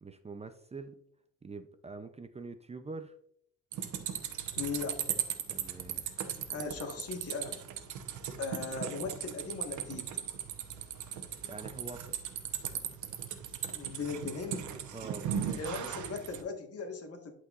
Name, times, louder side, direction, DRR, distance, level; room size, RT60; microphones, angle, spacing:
voice 1, 0.0-1.0 1.4-3.1 5.5-6.0 11.4-12.2 14.9-15.6, right 3 dB, 20° right, 9 dB, 0.5 m, -45 dB
sound 1, 3.7-16.4, right 9 dB, 75° right, 1.0 m, -37 dB
voice 2, 4.6-5.0 6.2-7.6 8.4-10.1 13.7-14.7 15.6-17.3, left 4 dB, 50° left, 4 dB, 1.6 m, -38 dB
11.5 x 4.7 x 2.5 m, 0.67 s
cardioid pair, 90°, 30 cm